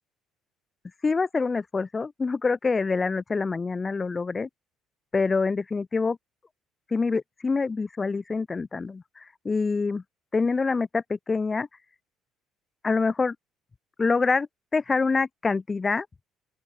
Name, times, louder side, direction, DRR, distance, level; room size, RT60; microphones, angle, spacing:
voice 1, 1.0-4.5 5.1-6.2 6.9-10.0 10.3-11.7 12.8-13.4 14.0-14.5 14.7-16.1, left 4 dB, 25° left, 1.9 m, -26 dB
open air
supercardioid pair, 80°, 0 cm